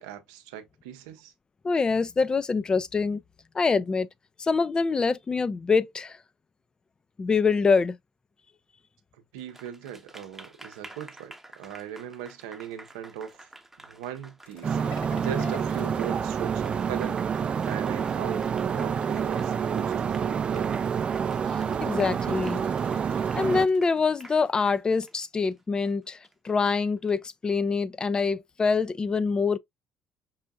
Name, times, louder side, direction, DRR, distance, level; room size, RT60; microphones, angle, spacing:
voice 1, 0.0-1.3 9.3-13.5 13.9-20.7, right 9 dB, 80° right, 0.6 m, -39 dB
voice 2, 1.6-3.2 3.5-4.1 4.4-6.2 7.2-8.0 21.8-22.6 23.3-26.2 26.4-29.6, left 4 dB, 30° left, 0.4 m, -25 dB
Applause, 9.4-27.1, right 2 dB, 10° right, 0.8 m, -50 dB
sound 1, 14.4-17.2 18.5-20.0 20.6-24.8, left 7 dB, 55° left, 0.8 m, -50 dB
sound 2, 14.6-23.7, right 7 dB, 40° right, 0.4 m, -28 dB
5.5 x 2.5 x 2.3 m
hypercardioid pair, 60°, 3 cm